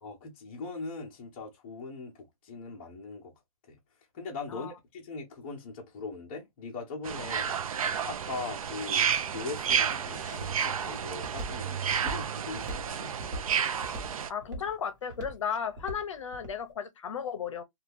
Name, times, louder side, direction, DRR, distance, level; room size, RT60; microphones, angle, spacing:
voice 1, 0.0-3.3 3.7-3.8 4.1-7.6 8.0-13.1, left 4 dB, 20° left, 0.7 m, -40 dB
sound 1, 7.0-14.3, right 7 dB, 75° right, 0.5 m, -31 dB
Walk footsteps, 8.4-16.6, right 1 dB, 35° right, 1.1 m, -42 dB
voice 2, 14.3-17.6, left 7 dB, 60° left, 0.6 m, -34 dB
2.8 x 2.3 x 3.3 m
hypercardioid pair, 175°, 18 cm